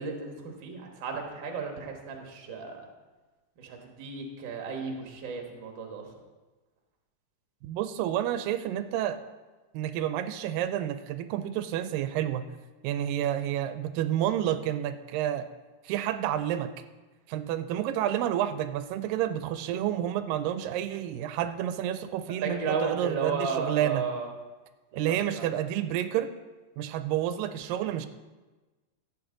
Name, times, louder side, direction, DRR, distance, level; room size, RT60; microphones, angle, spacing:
voice 1, 0.0-2.8 3.6-6.1 22.4-24.3 24.9-25.5, right 5 dB, 50° right, 2 dB, 1.5 m, -34 dB
voice 2, 7.6-9.2 9.7-12.5 12.8-15.5 15.8-16.7 17.3-24.1 24.9-26.3 26.8-28.1, right 11 dB, 85° right, 11 dB, 2.2 m, -29 dB
13.5 x 8.2 x 3.8 m, 1.2 s
omnidirectional pair, 3.9 m